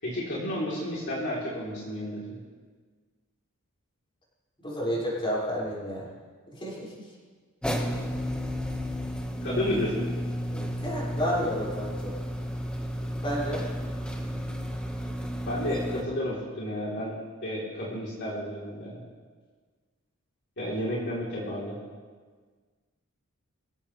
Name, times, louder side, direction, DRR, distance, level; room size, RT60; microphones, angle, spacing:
voice 1, 0.0-2.4 9.4-10.0 15.4-19.0 20.6-21.7, left 1 dB, 55° left, -7 dB, 3.6 m, -31 dB
voice 2, 4.6-6.0 6.5-6.9 10.5-12.1 13.2-13.6, equal, 25° left, -6 dB, 5.8 m, -30 dB
sound 1, 7.6-16.0, equal, 5° left, 1.5 m, -32 dB
25.0 x 16.5 x 3.3 m, 1.5 s
head